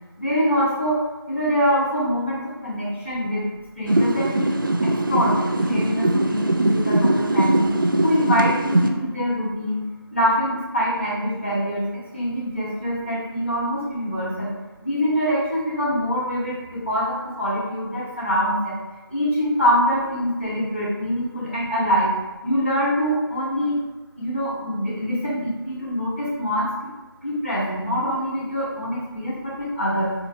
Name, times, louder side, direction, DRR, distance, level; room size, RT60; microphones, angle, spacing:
voice 1, 0.2-1.0 1.3-3.5 3.8-4.5 4.8-7.7 8.0-9.9 10.1-11.9 12.1-14.5 14.8-18.8 19.1-23.8 24.2-26.9 27.2-30.1, equal, 30° left, -7 dB, 1.2 m, -24 dB
sound 1, 3.9-8.9, right 1 dB, 55° right, 0.5 m, -21 dB
4.6 x 2.3 x 3.3 m, 1.2 s
figure-of-eight pair, 165°, 13 cm